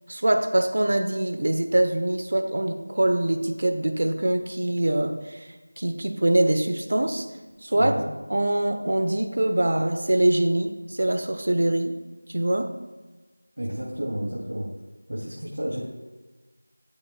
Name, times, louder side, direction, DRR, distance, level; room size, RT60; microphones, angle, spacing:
voice 1, 0.1-7.3 7.6-7.9 8.3-12.0 12.3-12.7, right 1 dB, 50° right, 6 dB, 0.9 m, -24 dB
voice 2, 7.7-8.0 13.6-14.7 15.1-15.8, equal, 75° right, -7 dB, 2.9 m, -30 dB
15.5 x 7.2 x 2.3 m, 1.2 s
figure-of-eight pair, 175°, 0 cm